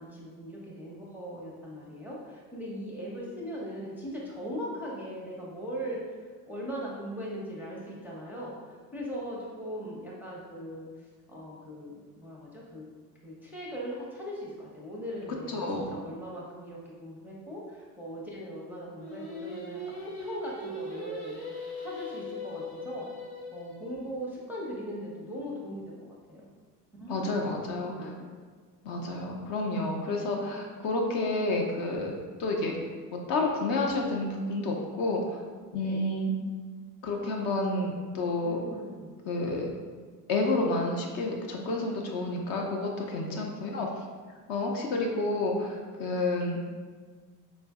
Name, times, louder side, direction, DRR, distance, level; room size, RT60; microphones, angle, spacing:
voice 1, 0.0-6.0 6.5-10.9 11.3-12.8 13.2-23.1 23.5-26.5 27.0-28.3 30.3-30.6 35.8-36.1 38.4-39.1 43.2-43.5, equal, 5° right, -5 dB, 0.5 m, -40 dB
voice 2, 15.5-15.9 27.1-28.1 28.8-32.1 32.4-32.7 33.1-35.4 35.7-36.3 37.0-38.6 39.3-39.7 40.3-43.9 44.5-46.6, left 2 dB, 45° left, 0 dB, 0.6 m, -30 dB
Singing, 18.9-24.1, left 2 dB, 70° left, 1.0 m, -40 dB
4.0 x 2.5 x 2.3 m, 1.5 s
figure-of-eight pair, 60°, 48 cm